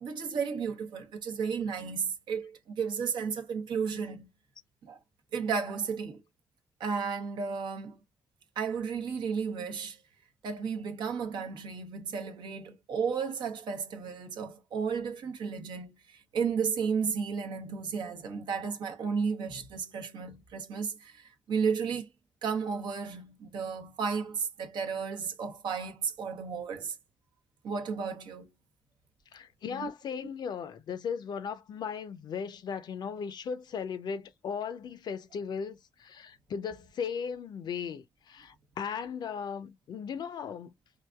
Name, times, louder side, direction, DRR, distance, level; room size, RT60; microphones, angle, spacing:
voice 1, 0.0-4.3 4.8-5.0 5.3-6.2 6.8-8.0 8.6-10.0 10.4-22.1 22.4-27.0 27.6-28.5 29.7-29.9, right 6 dB, 75° right, 0.8 m, -33 dB
voice 2, 29.3-40.7, left 6 dB, 65° left, 0.5 m, -37 dB
4.7 x 2.6 x 2.3 m
hypercardioid pair, 40°, 8 cm